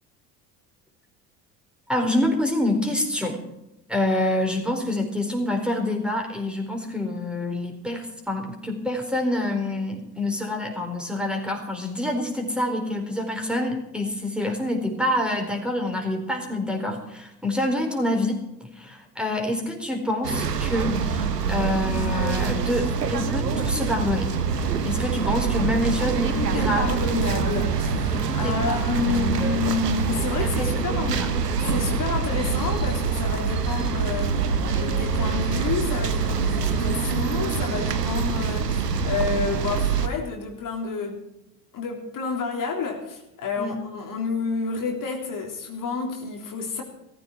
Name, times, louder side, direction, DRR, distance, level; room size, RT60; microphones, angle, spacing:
voice 1, 1.9-3.4 3.9-24.3 24.8-26.9 28.1-29.6 30.4-31.3 43.6-43.8, left 1 dB, ahead, 2 dB, 4.4 m, -27 dB
sound 1, 20.2-40.1, right 5 dB, 85° right, 1.3 m, -25 dB
voice 2, 26.3-31.2 31.6-41.2 41.7-46.8, left 5 dB, 45° left, 1 dB, 3.4 m, -30 dB
16.5 x 14.5 x 4.6 m, 0.86 s
figure-of-eight pair, 65°, 47 cm